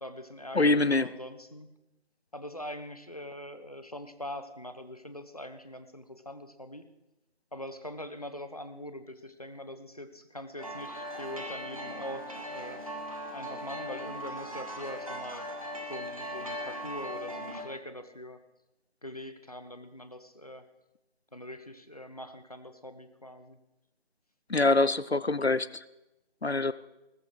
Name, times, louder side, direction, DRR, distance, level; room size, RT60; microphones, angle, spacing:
voice 1, 0.0-1.7 2.3-6.9 7.5-12.8 13.3-15.4 15.9-18.4 19.0-20.6 21.3-23.6, left 1 dB, 35° left, 10 dB, 1.3 m, -42 dB
voice 2, 0.5-1.1 24.5-25.8 26.4-26.7, left 2 dB, 75° left, 17 dB, 1.0 m, -24 dB
sound 1, 10.6-17.6, equal, 35° right, 2.5 m, -39 dB
20.5 x 13.5 x 5.0 m, 0.93 s
figure-of-eight pair, 175°, 32 cm